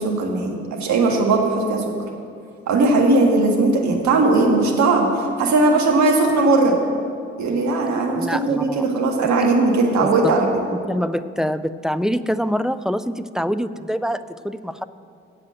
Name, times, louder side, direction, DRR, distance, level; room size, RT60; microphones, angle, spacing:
voice 1, 0.0-1.8 2.7-6.8 7.4-10.6, right 3 dB, 60° right, 1 dB, 1.8 m, -18 dB
voice 2, 7.9-8.9 10.0-10.1 10.9-14.8, equal, ahead, 12 dB, 0.3 m, -25 dB
7.8 x 7.4 x 7.7 m, 2.3 s
hypercardioid pair, 45°, 32 cm